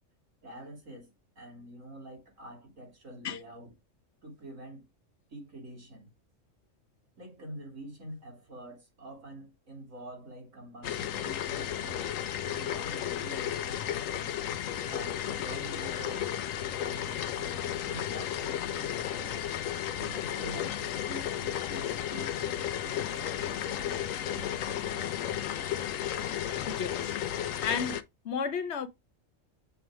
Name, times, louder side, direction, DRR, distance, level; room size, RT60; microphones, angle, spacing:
voice 1, 0.4-3.7 4.2-4.9 5.3-6.1 7.2-14.1 14.8-16.3 16.8-19.3 20.0-25.3, right 1 dB, 85° right, 2.8 m, -46 dB
sound 1, 10.8-28.0, left 10 dB, 85° left, 1.0 m, -33 dB
voice 2, 26.7-27.2 27.6-28.0 28.2-28.9, left 6 dB, 60° left, 1.0 m, -32 dB
7.0 x 3.1 x 4.6 m
omnidirectional pair, 1.3 m